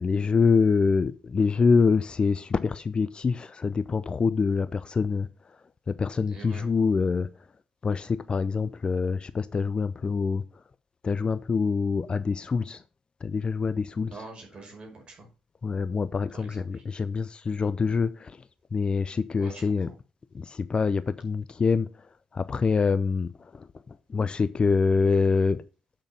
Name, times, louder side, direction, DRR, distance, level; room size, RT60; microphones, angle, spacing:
voice 1, 0.0-5.3 5.9-7.3 7.8-10.4 11.0-12.8 13.2-14.1 15.6-18.4 18.7-19.9 20.3-21.9 22.3-25.6, left 5 dB, 35° left, 0.6 m, -25 dB
voice 2, 6.2-6.7 14.0-15.3 16.3-16.8 19.4-20.0, right 3 dB, 40° right, 5.4 m, -45 dB
8.4 x 6.5 x 5.5 m
figure-of-eight pair, 45°, 3 cm